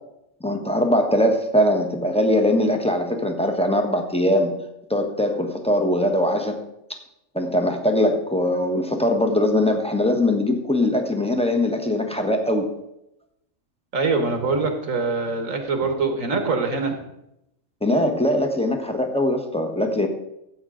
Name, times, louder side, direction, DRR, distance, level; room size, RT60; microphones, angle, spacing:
voice 1, 0.4-4.6 4.9-6.6 7.3-12.7 17.8-20.1, left 1 dB, 5° left, 4 dB, 1.1 m, -21 dB
voice 2, 13.9-17.0, right 3 dB, 70° right, 5 dB, 1.8 m, -23 dB
13.5 x 8.2 x 3.8 m, 0.83 s
omnidirectional pair, 1.4 m